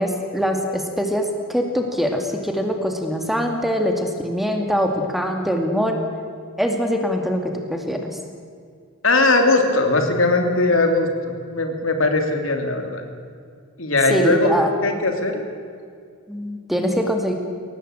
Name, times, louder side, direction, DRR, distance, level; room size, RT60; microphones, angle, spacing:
voice 1, 0.0-6.0 6.6-8.1 14.1-14.7 16.3-17.3, equal, ahead, 3 dB, 2.3 m, -23 dB
voice 2, 9.0-13.1 13.8-14.5 14.8-15.4, left 2 dB, 70° left, 4 dB, 3.0 m, -19 dB
22.0 x 18.5 x 9.0 m, 2.2 s
head